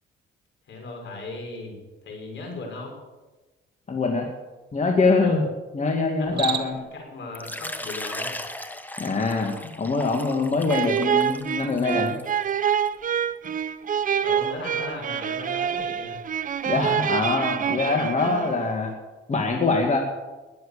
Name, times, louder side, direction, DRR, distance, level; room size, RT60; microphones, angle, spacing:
voice 1, 0.7-2.9 5.2-5.5 6.2-6.6 6.9-8.4 14.2-16.2, left 2 dB, 70° left, 0 dB, 6.3 m, -37 dB
voice 2, 3.9-4.3 4.7-5.4 5.7-6.8 9.0-12.2 16.7-18.9 19.3-20.0, left 3 dB, 35° left, 1 dB, 2.2 m, -23 dB
Cricket, 6.2-7.0, right 8 dB, 60° right, 1.5 m, -30 dB
Water / Liquid, 7.3-12.9, left 1 dB, 10° left, 1.3 m, -37 dB
sound 1, 10.7-18.7, right 8 dB, 45° right, 0.6 m, -26 dB
20.0 x 7.8 x 7.0 m, 1.2 s
cardioid pair, 90°, 20 cm